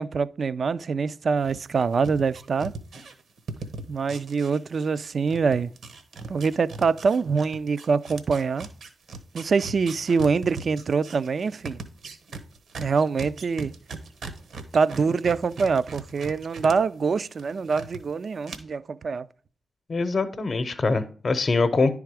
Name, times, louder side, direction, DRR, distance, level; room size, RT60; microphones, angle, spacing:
voice 1, 0.0-2.7 3.9-5.7 6.3-8.7 9.3-11.8 12.8-13.7 14.7-19.3, right 5 dB, 60° right, 0.3 m, -24 dB
sound 1, 1.4-5.0 5.3-16.8 17.1-18.0 18.4-18.6, right 4 dB, 75° right, 1.0 m, -39 dB
voice 2, 19.9-22.0, left 3 dB, 50° left, 0.7 m, -23 dB
10.0 x 3.5 x 4.8 m
supercardioid pair, 40°, 0 cm